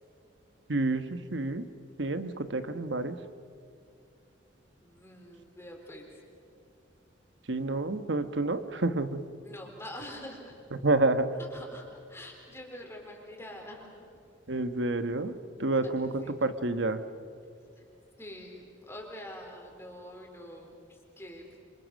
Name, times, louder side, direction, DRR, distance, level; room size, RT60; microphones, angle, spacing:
voice 1, 0.7-1.6 2.0-3.2 7.5-9.3 10.8-11.4 14.5-15.3 15.6-17.0, right 2 dB, 65° right, 10 dB, 1.3 m, -29 dB
voice 2, 4.8-6.2 9.4-10.6 11.4-14.0 16.2-16.3 17.8-17.9 18.2-21.6, left 1 dB, 15° left, 0 dB, 4.1 m, -45 dB
28.0 x 26.0 x 6.6 m, 2.5 s
head